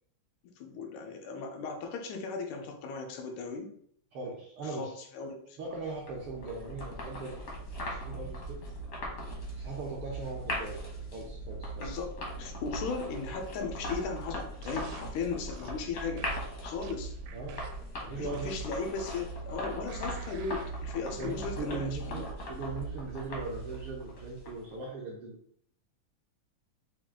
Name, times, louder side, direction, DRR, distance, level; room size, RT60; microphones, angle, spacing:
voice 1, 0.4-3.7 4.6-5.6 11.7-16.3 16.6-17.1 18.2-22.2, left 5 dB, 90° left, 4 dB, 2.2 m, -37 dB
voice 2, 4.1-5.0 5.6-7.4 7.8-8.6 9.5-10.8 11.1-12.0 17.3-17.6 18.0-18.5 21.2-25.4, right 3 dB, 75° right, -3 dB, 1.3 m, -39 dB
sound 1, 5.7-24.7, right 1 dB, 60° left, 0.9 m, -39 dB
sound 2, 14.6-15.1 15.5-15.8 16.2-17.9 18.3-19.4 19.9-20.7 21.2-21.3, right 7 dB, 90° right, 2.0 m, -52 dB
6.0 x 2.4 x 3.6 m, 0.64 s
omnidirectional pair, 3.3 m